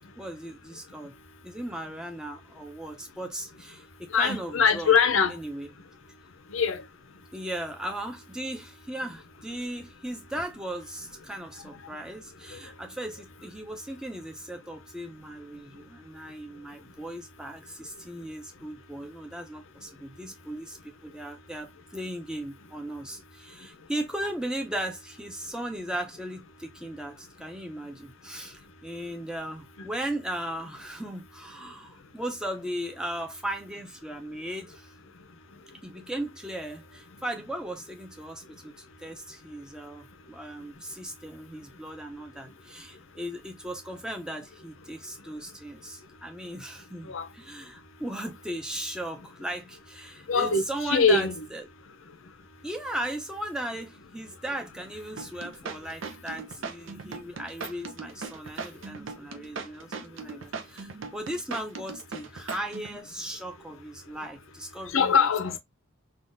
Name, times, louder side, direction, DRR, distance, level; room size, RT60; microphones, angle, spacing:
voice 1, 0.2-1.1 1.4-4.9 5.3-5.7 7.3-34.9 35.8-51.7 52.6-65.3, right 1 dB, 5° right, 0.6 m, -37 dB
voice 2, 4.1-5.4 6.5-6.8 47.1-47.3 50.3-50.6 50.9-51.3 64.9-65.6, left 5 dB, 65° left, 0.6 m, -22 dB
sound 1, 55.2-63.0, right 4 dB, 60° right, 0.6 m, -38 dB
3.7 x 2.4 x 2.6 m
head